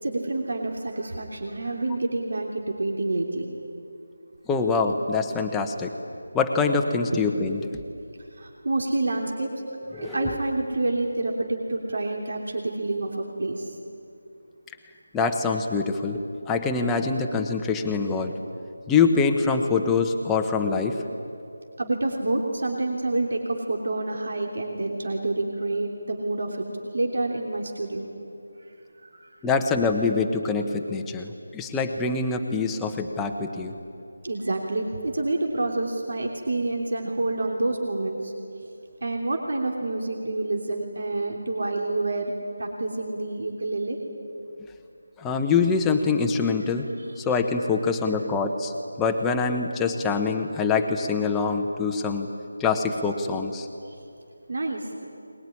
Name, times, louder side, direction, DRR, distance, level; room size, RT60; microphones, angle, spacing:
voice 1, 0.0-3.5 8.4-9.5 9.9-13.7 21.8-26.7 26.9-28.0 29.0-29.3 34.2-38.3 39.0-42.3 42.6-44.0 54.5-54.9, right 2 dB, 65° right, 1 dB, 3.2 m, -28 dB
voice 2, 4.5-5.9 6.3-7.6 9.9-10.4 15.1-18.3 18.9-21.0 29.4-33.7 45.2-46.9 47.2-52.3 52.6-53.7, left 4 dB, 5° left, 3 dB, 1.0 m, -24 dB
23.0 x 20.5 x 9.9 m, 2.6 s
figure-of-eight pair, 170°, 0 cm